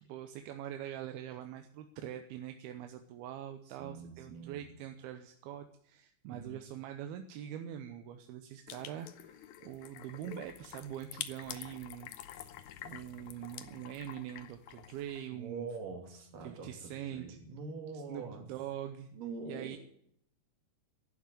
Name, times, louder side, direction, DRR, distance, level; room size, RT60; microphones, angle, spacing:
voice 1, 0.0-12.4 12.8-15.7 16.4-17.4 18.1-19.1 19.5-19.8, right 11 dB, 80° right, 6 dB, 2.7 m, -43 dB
voice 2, 3.7-4.6 6.2-6.5 15.3-18.5 19.1-19.8, right 4 dB, 60° right, 3 dB, 4.3 m, -44 dB
sound 1, 8.7-15.3, left 11 dB, 80° left, 1.7 m, -48 dB
11.5 x 11.5 x 9.1 m, 0.67 s
omnidirectional pair, 4.6 m